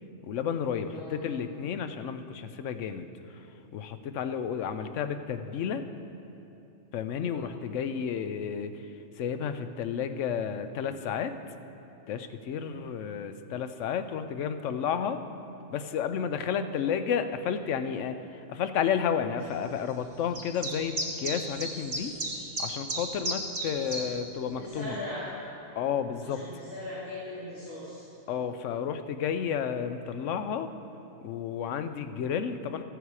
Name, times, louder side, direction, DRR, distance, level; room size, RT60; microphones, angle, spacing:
voice 1, 0.2-3.1 3.7-5.8 6.9-8.7 9.2-11.3 12.1-15.2 15.7-22.1 22.6-25.0 25.8-26.4 28.3-30.7 31.2-32.8, left 7 dB, 80° left, 9 dB, 1.0 m, -31 dB
voice 2, 0.9-1.3 7.2-7.5 12.6-12.8 23.7-24.1 24.4-25.3 26.2-28.0, left 1 dB, 60° left, -12 dB, 2.8 m, -40 dB
sound 1, 20.3-24.0, right 2 dB, 55° right, 1.9 m, -33 dB
13.5 x 8.1 x 4.8 m, 2.9 s
omnidirectional pair, 1.3 m